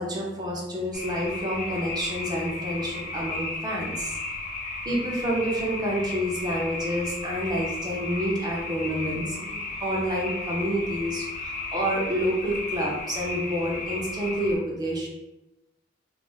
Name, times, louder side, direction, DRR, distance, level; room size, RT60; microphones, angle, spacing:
voice 1, 0.0-4.2 4.9-15.1, equal, 25° right, -3 dB, 0.5 m, -28 dB
sound 1, 0.9-14.5, left 2 dB, 45° left, 0.5 m, -34 dB
2.4 x 2.0 x 3.8 m, 0.95 s
head